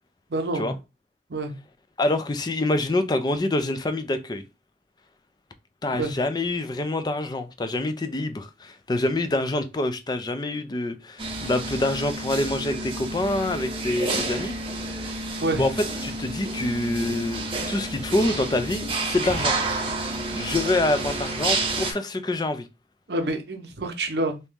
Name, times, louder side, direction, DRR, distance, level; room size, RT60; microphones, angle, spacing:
voice 1, 0.3-0.7 1.3-1.5 6.0-6.1 15.4-15.6 23.1-24.4, right 2 dB, 65° right, 0.7 m, -27 dB
voice 2, 2.0-4.4 5.8-14.5 15.6-15.7 16.0-19.5 20.3-22.7, left 2 dB, 25° left, 0.4 m, -26 dB
sound 1, 11.2-21.9, right 2 dB, 30° right, 0.7 m, -30 dB
2.9 x 2.7 x 3.5 m
head